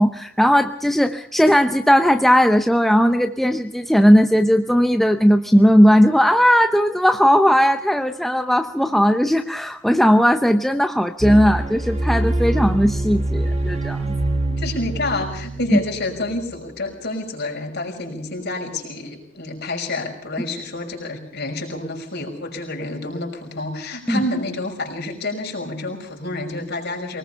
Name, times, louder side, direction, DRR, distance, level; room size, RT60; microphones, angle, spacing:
voice 1, 0.0-14.1 15.7-15.8 24.1-24.2, equal, ahead, 6 dB, 0.7 m, -17 dB
sound 1, 11.2-16.5, right 1 dB, 30° right, 2.4 m, -24 dB
voice 2, 14.6-27.2, left 2 dB, 55° left, 1 dB, 5.8 m, -28 dB
23.5 x 20.0 x 5.6 m, 0.78 s
head